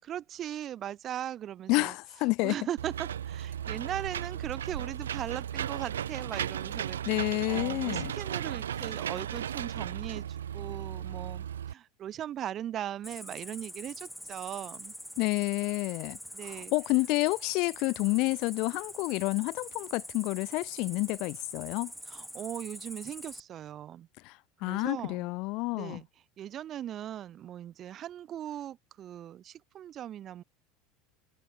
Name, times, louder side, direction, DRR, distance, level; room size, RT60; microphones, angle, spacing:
voice 1, 0.0-1.9 2.4-14.9 16.3-16.7 22.1-24.1 24.6-25.3 25.7-26.1 26.4-30.4, right 11 dB, 40° right, 6.3 m, -39 dB
voice 2, 1.7-2.6 7.1-8.1 15.2-16.2 16.4-21.9 24.2-26.0, left 25 dB, 60° left, 1.0 m, -29 dB
Engine / Mechanisms, 2.8-11.7, right 9 dB, 85° right, 1.3 m, -35 dB
Cricket, 13.0-23.4, equal, ahead, 4.3 m, -44 dB
hypercardioid pair, 80°, 0 cm